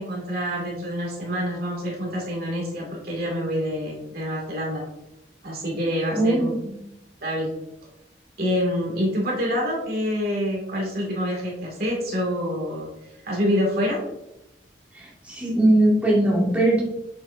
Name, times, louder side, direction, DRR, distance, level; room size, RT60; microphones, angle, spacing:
voice 1, 0.0-4.8 5.4-6.5 7.2-7.5 8.4-12.9 13.2-14.0, equal, 60° right, -2 dB, 2.3 m, -26 dB
voice 2, 6.2-6.8 14.9-16.8, right 1 dB, 10° right, -6 dB, 2.2 m, -20 dB
7.4 x 7.3 x 2.6 m, 0.88 s
head